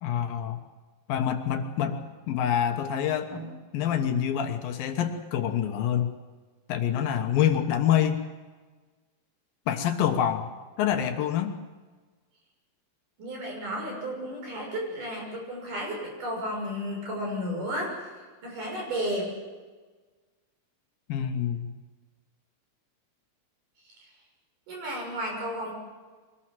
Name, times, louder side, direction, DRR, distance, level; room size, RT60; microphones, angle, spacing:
voice 1, 0.0-0.6 1.1-3.3 3.7-6.1 6.7-8.2 9.7-10.5 10.8-11.6 21.1-21.7, left 9 dB, 75° left, 7 dB, 2.9 m, -26 dB
voice 2, 13.2-18.1 18.4-19.3 24.0-24.1 24.7-25.7, equal, 55° right, 0 dB, 7.9 m, -33 dB
23.5 x 19.5 x 7.6 m, 1.4 s
omnidirectional pair, 4.3 m